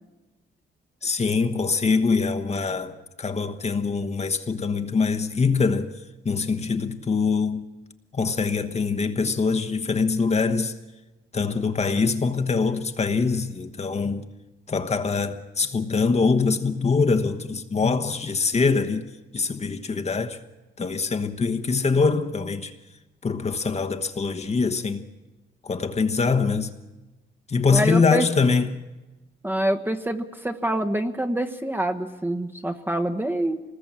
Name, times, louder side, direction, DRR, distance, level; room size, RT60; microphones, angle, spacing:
voice 1, 1.0-5.9 6.2-7.6 8.1-10.7 11.3-14.2 14.7-20.4 20.8-22.7 23.2-25.0 25.6-26.7 27.5-28.7, left 4 dB, 30° left, 1.2 m, -23 dB
voice 2, 27.7-28.2 29.4-33.6, right 1 dB, 10° right, 1.1 m, -26 dB
25.0 x 20.0 x 7.5 m
cardioid pair, 115°, 21 cm